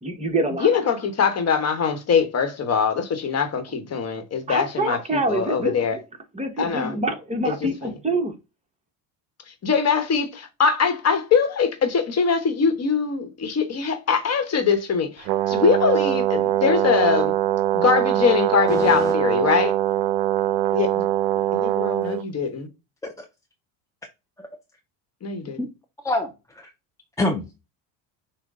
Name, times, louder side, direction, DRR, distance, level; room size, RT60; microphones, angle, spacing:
voice 1, 0.0-0.7 4.5-6.0 6.3-8.3, right 2 dB, 15° right, 1.1 m, -26 dB
voice 2, 0.6-6.0 6.6-6.9 7.4-7.5 7.8-7.9 9.6-17.4 17.7-19.7 20.7-21.1 21.5-22.7 25.2-25.6, left 6 dB, 35° left, 1.1 m, -22 dB
Brass instrument, 15.2-22.2, right 12 dB, 65° right, 0.6 m, -22 dB
voice 3, 18.7-19.1 23.0-23.3 24.4-24.5 25.6-25.7 26.0-26.7 27.2-27.5, left 2 dB, 10° left, 0.4 m, -27 dB
6.3 x 2.2 x 3.6 m
supercardioid pair, 105°, 45 cm